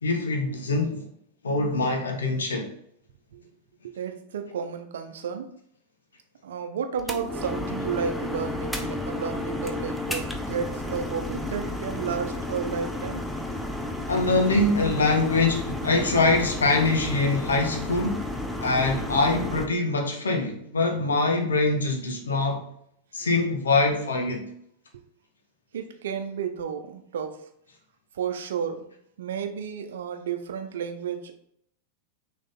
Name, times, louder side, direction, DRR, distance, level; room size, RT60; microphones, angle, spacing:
voice 1, 0.0-1.0 1.4-2.7 14.1-18.3 18.6-22.6 23.1-24.5, left 3 dB, 70° left, 1.3 m, -24 dB
voice 2, 3.8-5.6 6.4-13.3 25.7-27.5 28.1-28.9 29.2-31.3, right 7 dB, 60° right, 0.7 m, -32 dB
sound 1, 7.0-19.7, left 1 dB, 5° left, 0.8 m, -32 dB
6.3 x 3.5 x 4.2 m
figure-of-eight pair, 90°, 0 cm